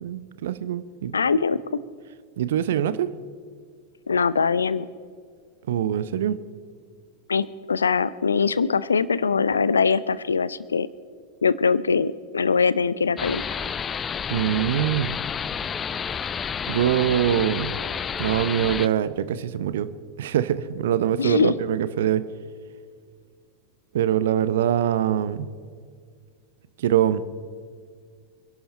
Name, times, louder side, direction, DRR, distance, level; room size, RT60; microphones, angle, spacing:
voice 1, 0.0-1.1 2.4-3.1 5.7-6.4 14.3-15.1 16.7-17.7 18.2-19.9 20.2-22.2 23.9-25.5 26.8-27.2, right 10 dB, 60° right, 15 dB, 0.8 m, -23 dB
voice 2, 1.1-1.6 4.1-4.9 7.3-10.9 11.4-13.4 21.2-21.5, left 5 dB, 75° left, 19 dB, 0.6 m, -22 dB
sound 1, 13.2-18.9, left 7 dB, 20° left, 0.5 m, -30 dB
27.5 x 11.5 x 4.3 m, 2.1 s
figure-of-eight pair, 90°, 0 cm